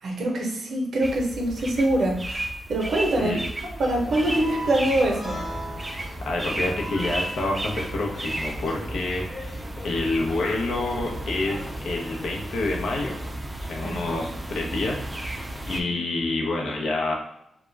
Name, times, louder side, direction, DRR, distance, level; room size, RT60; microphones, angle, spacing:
voice 1, 0.0-3.4 3.8-5.4 13.8-14.0 15.7-15.9, right 1 dB, 75° right, 0 dB, 0.6 m, -24 dB
sound 1, 1.0-15.8, right 1 dB, 15° right, 0.4 m, -34 dB
sound 2, 3.8-13.3, equal, 25° left, 0.9 m, -40 dB
voice 2, 6.3-13.2 13.7-17.2, left 2 dB, 80° left, -1 dB, 0.6 m, -28 dB
2.2 x 2.0 x 3.2 m, 0.78 s
cardioid pair, 60°, 0 cm